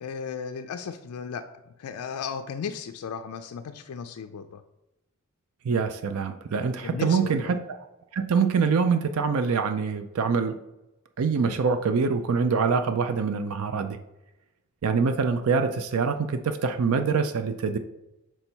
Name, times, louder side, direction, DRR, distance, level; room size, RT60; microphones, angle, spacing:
voice 1, 0.0-1.4 1.8-4.6 6.8-7.5, left 6 dB, 75° left, 6 dB, 0.3 m, -35 dB
voice 2, 5.6-7.9 8.1-10.6 11.2-14.0 14.8-17.8, right 5 dB, 75° right, 9 dB, 0.4 m, -25 dB
5.3 x 4.4 x 4.4 m, 0.95 s
head